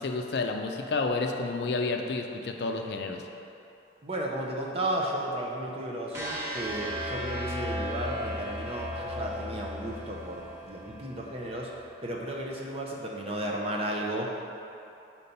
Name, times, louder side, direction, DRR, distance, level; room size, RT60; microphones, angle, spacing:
voice 1, 0.0-3.2, left 3 dB, 60° left, 3 dB, 0.4 m, -30 dB
voice 2, 4.0-11.7 12.0-14.5, right 1 dB, 35° right, -2 dB, 0.6 m, -34 dB
sound 1, 6.1-12.2, left 1 dB, 15° right, 1.0 m, -36 dB
4.4 x 4.2 x 5.3 m, 2.8 s
head